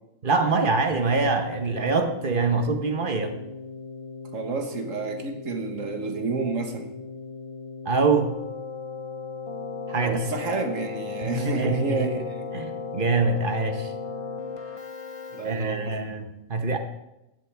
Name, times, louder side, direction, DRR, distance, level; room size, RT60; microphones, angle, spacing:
voice 1, 0.2-3.3 7.8-8.3 9.9-10.3 11.2-12.1 12.5-12.6 12.9-13.9 15.4-16.8, right 4 dB, 45° right, 6 dB, 1.2 m, -24 dB
Keyboard (musical), 1.0-16.1, left 4 dB, 30° left, 0.7 m, -37 dB
voice 2, 4.3-6.9 10.0-12.5 15.3-16.0, right 4 dB, 80° right, 5 dB, 1.7 m, -29 dB
15.0 x 10.5 x 3.4 m, 0.93 s
omnidirectional pair, 1.3 m